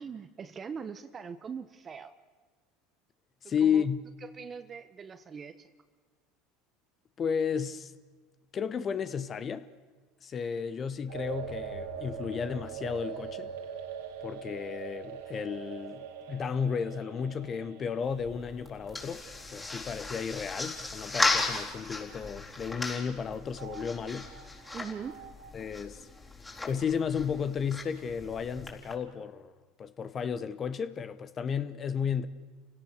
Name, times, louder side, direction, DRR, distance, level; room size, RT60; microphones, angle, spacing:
voice 1, 0.0-2.1 3.4-3.8 4.3-5.7 24.7-25.2, right 6 dB, 30° right, 1.1 m, -41 dB
voice 2, 3.4-4.0 7.2-7.9 8.5-9.7 10.2-13.5 14.2-19.2 19.5-24.3 25.5-26.1 26.6-29.5 29.8-32.3, left 7 dB, 35° left, 1.0 m, -33 dB
sound 1, 11.1-21.7 22.0-22.1 23.6-25.5, right 7 dB, 80° right, 2.5 m, -43 dB
sound 2, 18.0-28.9, left 3 dB, 15° left, 4.2 m, -36 dB
29.5 x 17.5 x 6.6 m
hypercardioid pair, 85°, 0 cm